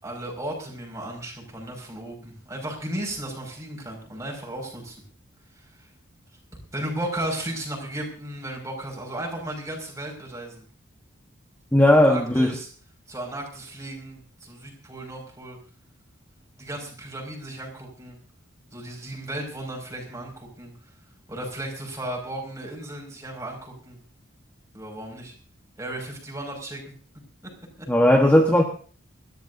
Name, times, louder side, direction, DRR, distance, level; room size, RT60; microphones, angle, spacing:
voice 1, 0.0-5.0 5.5-5.9 6.7-10.6 11.9-12.7 13.1-15.6 16.6-18.2 18.7-20.7 21.3-24.0 24.7-25.3 25.8-26.9 27.4-27.5 27.8-27.9, right 1 dB, 15° right, 0 dB, 5.8 m, -35 dB
voice 2, 11.7-12.5 27.9-28.6, left 1 dB, 10° left, 1 dB, 1.3 m, -17 dB
29.5 x 13.0 x 2.7 m, 0.41 s
head